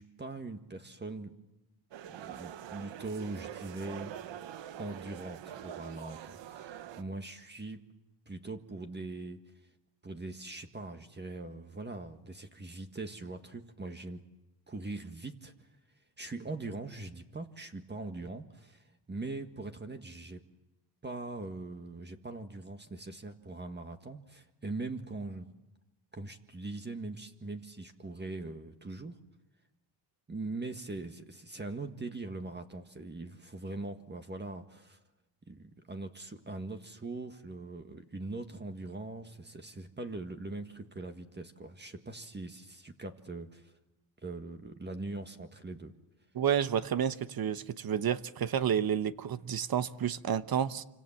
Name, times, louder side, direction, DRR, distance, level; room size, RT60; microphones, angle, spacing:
voice 1, 0.0-1.4 2.1-4.2 4.8-7.9 8.3-9.4 10.0-14.2 14.7-15.7 16.2-20.4 21.0-25.5 26.1-29.2 30.3-35.0 35.5-43.8 44.2-45.9, right 2 dB, 20° right, 1.8 m, -41 dB
sound 1, 1.9-7.0, right 10 dB, 65° right, 1.3 m, -44 dB
voice 2, 46.3-50.8, right 9 dB, 50° right, 1.1 m, -30 dB
27.0 x 26.0 x 7.4 m
cardioid pair, 90°, 47 cm